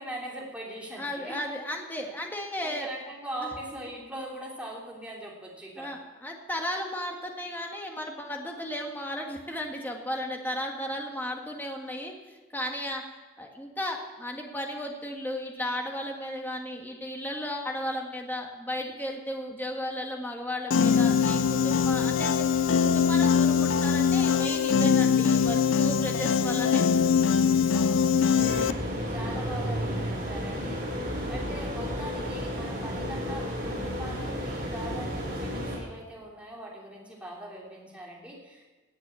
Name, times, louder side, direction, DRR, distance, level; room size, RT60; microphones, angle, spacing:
voice 1, 0.0-1.4 2.6-5.9 27.7-28.1 29.1-38.7, right 1 dB, 5° right, -4 dB, 3.2 m, -41 dB
voice 2, 1.0-2.9 3.4-3.5 5.8-13.1 13.4-22.5 22.8-26.8, left 1 dB, 10° left, 1 dB, 1.7 m, -35 dB
Piano, 20.7-28.7, left 6 dB, 85° left, 0.5 m, -22 dB
sound 1, 28.3-35.8, equal, 45° right, 6.2 m, -32 dB
17.5 x 8.4 x 7.1 m, 1.2 s
head